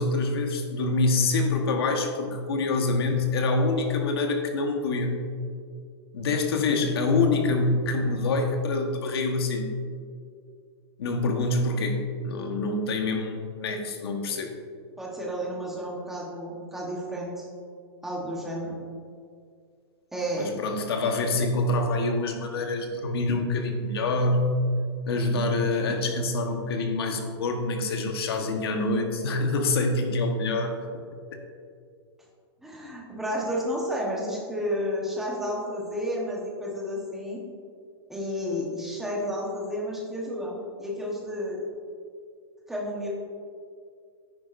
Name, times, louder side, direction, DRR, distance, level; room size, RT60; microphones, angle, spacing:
voice 1, 0.0-5.2 6.1-9.7 11.0-14.5 20.4-24.6 25.1-31.0, left 2 dB, 60° left, 4 dB, 1.3 m, -26 dB
voice 2, 15.0-17.5 18.0-18.8 20.1-20.5 32.6-37.4 38.1-41.7 42.7-43.1, equal, 5° right, -4 dB, 1.1 m, -31 dB
10.5 x 9.9 x 2.6 m, 2.2 s
supercardioid pair, 180°, 14 cm